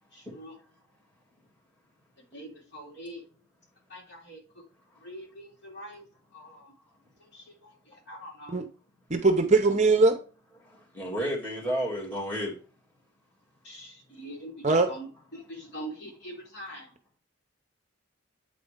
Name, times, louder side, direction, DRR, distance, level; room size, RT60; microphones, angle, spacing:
voice 1, 0.1-0.6 2.3-3.2 3.9-4.6 5.0-6.7 7.2-8.6 13.6-17.0, right 1 dB, 55° left, 3.3 m, -44 dB
voice 2, 9.1-10.2 14.6-14.9, right 3 dB, 35° right, 0.7 m, -21 dB
voice 3, 10.6-12.6, equal, 10° left, 2.1 m, -32 dB
8.8 x 4.2 x 5.0 m
head